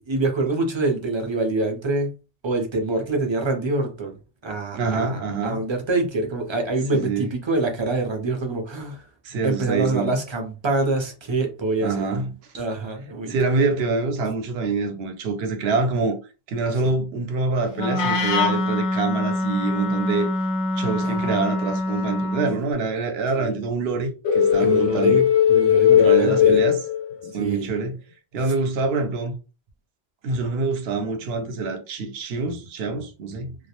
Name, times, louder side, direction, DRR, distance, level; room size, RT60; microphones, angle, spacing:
voice 1, 0.1-2.1 2.4-4.2 4.4-9.0 9.4-12.1 12.5-13.3 21.0-21.3 23.4-23.6 24.6-25.2 25.5-26.6 27.4-27.7, right 2 dB, 35° right, 0.5 m, -25 dB
voice 2, 4.8-5.6 6.9-7.3 9.2-10.1 11.8-12.3 13.3-16.2 16.5-20.3 20.8-25.3 25.9-26.8 27.3-28.0 28.3-29.3 30.2-33.5, right 4 dB, 80° right, 0.8 m, -25 dB
Wind instrument woodwind instrument, 17.7-22.6, left 2 dB, 45° left, 0.5 m, -24 dB
sound 1, 24.2-27.4, left 9 dB, 90° left, 0.8 m, -17 dB
2.2 x 2.0 x 2.8 m
omnidirectional pair, 1.0 m